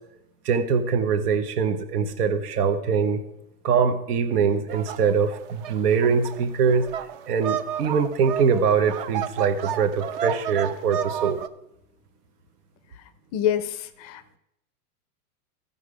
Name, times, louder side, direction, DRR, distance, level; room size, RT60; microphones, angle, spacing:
voice 1, 0.4-3.2 3.6-6.9 7.3-11.4, right 6 dB, 80° right, 7 dB, 1.1 m, -23 dB
sound 1, 4.7-11.5, right 10 dB, 40° right, 0.5 m, -31 dB
voice 2, 13.3-14.4, left 10 dB, 30° left, 12 dB, 0.4 m, -27 dB
14.5 x 5.5 x 4.9 m, 0.83 s
supercardioid pair, 150°, 46 cm